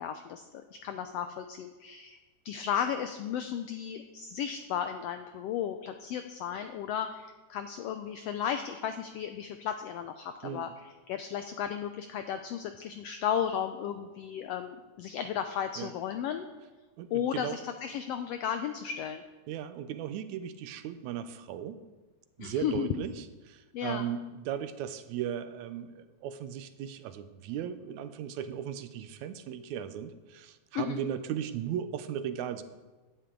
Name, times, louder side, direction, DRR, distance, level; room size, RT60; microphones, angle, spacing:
voice 1, 0.0-2.2 2.4-16.5 17.1-19.2 22.4-23.0 23.7-24.0 30.7-31.0, left 9 dB, 90° left, 8 dB, 1.4 m, -34 dB
voice 2, 10.4-10.7 15.8-15.9 17.0-17.6 19.5-21.8 22.4-32.6, right 9 dB, 80° right, 11 dB, 1.9 m, -37 dB
16.0 x 10.5 x 3.8 m, 1.2 s
omnidirectional pair, 3.5 m